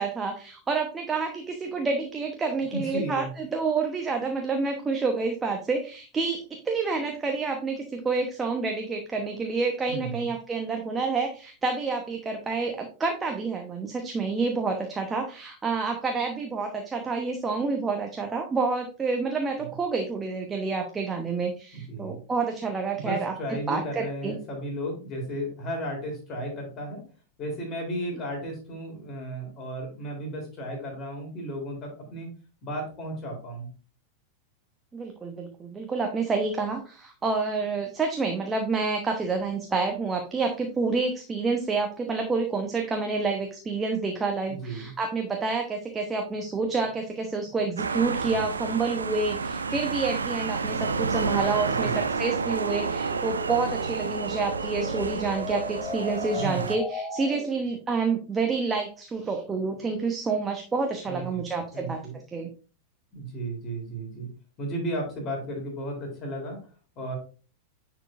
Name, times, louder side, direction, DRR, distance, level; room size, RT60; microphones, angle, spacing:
voice 1, 0.0-23.3 23.7-24.4 34.9-62.0 62.3-62.5, right 4 dB, 15° right, 3 dB, 1.1 m, -28 dB
voice 2, 2.7-3.3 9.9-10.3 19.6-19.7 21.7-22.2 22.9-27.0 27.4-32.3 32.6-33.7 44.5-44.9 51.7-52.1 56.4-56.7 61.1-62.2 63.1-64.3 64.6-66.6 67.0-67.1, right 1 dB, 30° left, 1 dB, 3.6 m, -34 dB
sound 1, 46.3-57.7, equal, 10° left, 3.1 m, -40 dB
sound 2, 47.8-56.8, right 4 dB, 75° right, 0.5 m, -30 dB
10.0 x 4.8 x 2.6 m, 0.36 s
figure-of-eight pair, 90°, 0 cm